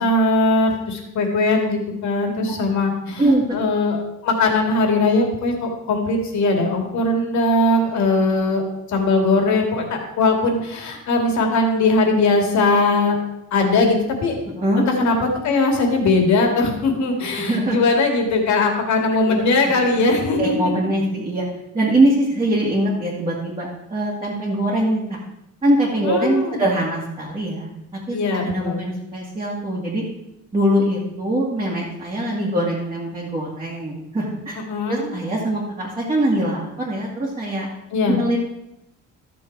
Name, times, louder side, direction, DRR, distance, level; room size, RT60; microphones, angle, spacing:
voice 1, 0.0-3.2 3.5-4.0 4.2-8.6 8.9-13.2 13.5-14.3 14.8-20.5 26.0-26.6 28.1-28.8 34.7-35.1 37.9-38.2, left 2 dB, 60° left, 3 dB, 2.4 m, -20 dB
voice 2, 14.5-14.8 17.4-17.8 19.3-20.1 20.4-21.4 21.7-25.2 25.6-27.7 28.1-28.2 28.4-30.0 30.5-34.6 34.9-37.7 38.1-38.4, right 1 dB, 15° right, -6 dB, 2.0 m, -22 dB
13.5 x 7.0 x 4.7 m, 0.86 s
cardioid pair, 165°, 32 cm